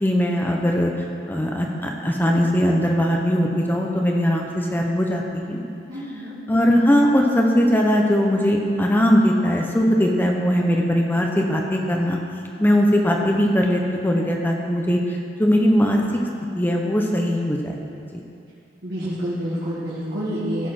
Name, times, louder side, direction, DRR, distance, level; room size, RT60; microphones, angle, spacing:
voice 1, 0.0-5.6 6.5-12.2 12.6-16.0 16.6-17.7 18.1-18.2, equal, 10° left, 0 dB, 0.7 m, -20 dB
voice 2, 5.9-6.4 18.8-20.7, equal, 75° right, -11 dB, 1.9 m, -28 dB
14.5 x 4.9 x 5.9 m, 2.6 s
head